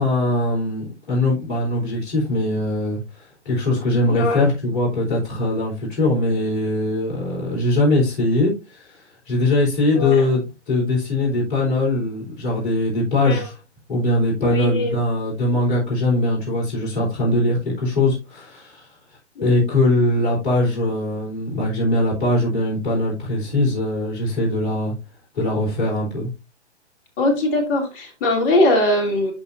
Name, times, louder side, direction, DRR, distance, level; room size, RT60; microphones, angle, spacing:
voice 1, 0.0-9.0 9.3-13.5 13.9-18.9 19.4-24.9 25.3-26.3, left 1 dB, 45° left, 4.1 m, -21 dB
voice 2, 4.1-4.4 9.9-10.3 13.2-13.5 14.4-15.0 19.4-19.6 27.2-29.3, left 1 dB, 25° left, 2.9 m, -21 dB
12.0 x 4.5 x 2.6 m
figure-of-eight pair, 135°, 35 cm